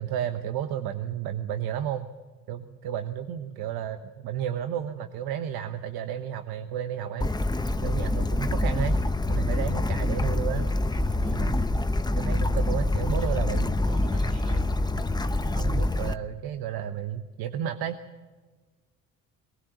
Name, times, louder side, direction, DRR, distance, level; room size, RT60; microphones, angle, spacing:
voice 1, 0.0-2.1 2.5-7.3 7.8-9.0 9.3-10.7 11.3-11.6 12.1-13.8 15.5-18.0, right 10 dB, 70° right, 9 dB, 1.1 m, -32 dB
Bird / Stream, 7.2-16.1, left 2 dB, 10° left, 0.8 m, -26 dB
voice 2, 10.5-11.4 13.1-13.4 13.8-14.7, right 2 dB, 90° right, 2 dB, 5.4 m, -46 dB
22.0 x 19.5 x 7.7 m, 1.3 s
supercardioid pair, 65°, 38 cm